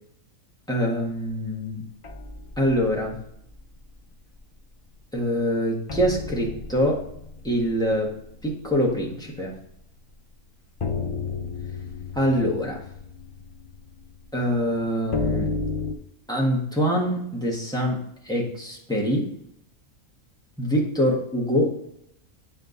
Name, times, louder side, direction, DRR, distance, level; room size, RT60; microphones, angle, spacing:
voice 1, 0.7-1.8 2.6-3.2 5.1-7.0 7.4-8.1 8.4-9.6 12.1-12.8 14.3-15.5 16.3-19.3 20.6-21.8, equal, 5° left, -3 dB, 1.5 m, -24 dB
sound 1, 2.0-4.0 4.3-4.6 5.0-5.1 5.9-9.7 10.1-10.2 10.8-16.0, left 4 dB, 50° left, 0.4 m, -33 dB
9.7 x 3.5 x 4.0 m, 0.74 s
omnidirectional pair, 1.5 m